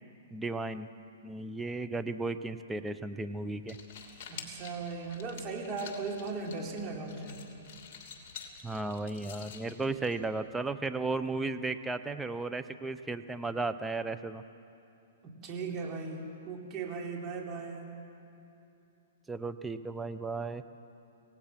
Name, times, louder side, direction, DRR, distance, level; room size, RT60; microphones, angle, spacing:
voice 1, 0.3-0.9 1.2-3.8 8.6-14.4 19.3-20.6, right 3 dB, 10° right, 9 dB, 0.8 m, -35 dB
sound 1, 3.5-10.5, left 6 dB, 45° left, 2.9 m, -49 dB
voice 2, 4.3-7.4 15.2-17.8, right 4 dB, 30° right, -1 dB, 3.6 m, -38 dB
25.5 x 18.0 x 6.0 m, 2.8 s
hypercardioid pair, 125°, 0 cm